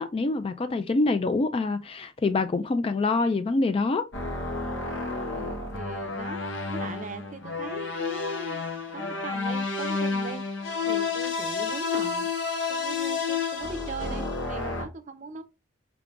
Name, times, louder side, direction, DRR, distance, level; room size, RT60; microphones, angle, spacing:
voice 1, 0.0-4.1, left 3 dB, 30° left, 0.3 m, -25 dB
sound 1, 4.1-14.9, left 4 dB, 80° left, 1.0 m, -30 dB
voice 2, 5.3-8.7 8.9-10.4 10.8-12.3 12.7-15.4, right 3 dB, 40° right, 0.6 m, -39 dB
4.7 x 3.6 x 2.4 m
head